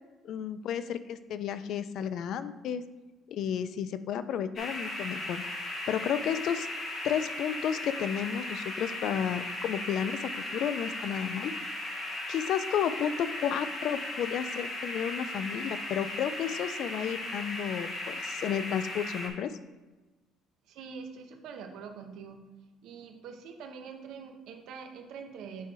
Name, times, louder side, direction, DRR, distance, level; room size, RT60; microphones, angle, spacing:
voice 1, 0.2-2.8 3.3-5.4 5.9-6.7 7.0-11.5 12.3-19.6, left 8 dB, 55° left, 13 dB, 0.3 m, -32 dB
sound 1, 4.6-19.3, left 2 dB, 35° left, 1.0 m, -37 dB
voice 2, 20.7-22.4 22.8-25.7, right 6 dB, 65° right, 5 dB, 0.8 m, -44 dB
8.2 x 3.0 x 4.8 m, 1.2 s
cardioid pair, 155°, 0 cm